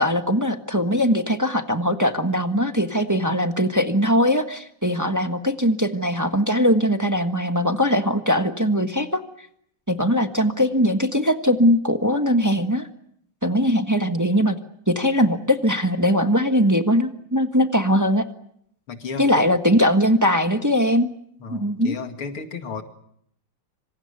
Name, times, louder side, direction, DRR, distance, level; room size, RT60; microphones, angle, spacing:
voice 1, 0.0-9.2 9.9-12.9 13.4-14.6 14.9-18.3 19.2-21.1 21.5-22.0, equal, 10° right, 6 dB, 1.1 m, -20 dB
voice 2, 18.9-19.5 21.4-22.8, left 5 dB, 90° left, 6 dB, 3.2 m, -33 dB
26.5 x 26.5 x 6.9 m, 0.70 s
omnidirectional pair, 2.3 m